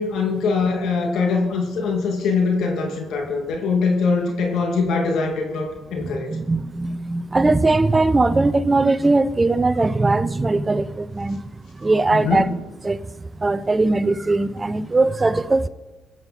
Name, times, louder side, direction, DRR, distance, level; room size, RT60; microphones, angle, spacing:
voice 1, 0.0-6.4 12.1-12.5, left 4 dB, 75° left, 2.4 m, -22 dB
voice 2, 6.0-12.5 12.8-13.0 13.4-15.7, right 2 dB, 25° right, 0.7 m, -20 dB
22.5 x 9.0 x 4.2 m
cardioid pair, 75°, 0 cm